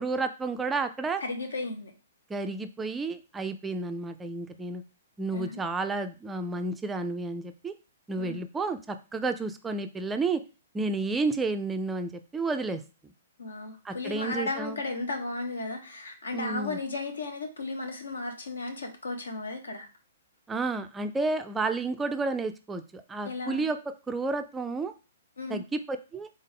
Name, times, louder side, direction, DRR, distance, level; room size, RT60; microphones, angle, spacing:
voice 1, 0.0-1.2 2.3-4.8 5.2-7.7 8.1-10.4 10.7-12.8 13.8-14.8 16.3-16.8 20.5-23.8 24.1-24.9 25.5-26.3, right 3 dB, 10° right, 7 dB, 0.3 m, -31 dB
voice 2, 1.2-1.9 5.3-5.6 8.2-8.4 13.4-19.9 23.2-23.6 25.4-25.6, left 3 dB, 70° left, 5 dB, 1.0 m, -34 dB
3.7 x 3.6 x 3.5 m, 0.32 s
figure-of-eight pair, 115°, 0 cm